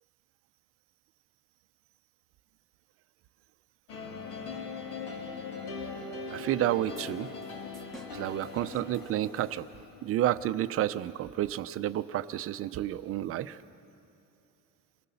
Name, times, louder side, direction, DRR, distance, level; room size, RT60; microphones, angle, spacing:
sound 1, 3.9-10.1, left 4 dB, 80° left, 2.9 m, -40 dB
voice 1, 6.3-7.3 8.1-9.7 10.0-13.6, right 13 dB, 40° right, 13 dB, 0.5 m, -30 dB
sound 2, 7.0-10.0, right 2 dB, ahead, 1.0 m, -54 dB
27.5 x 19.0 x 6.9 m, 2.7 s
cardioid pair, 175°, 34 cm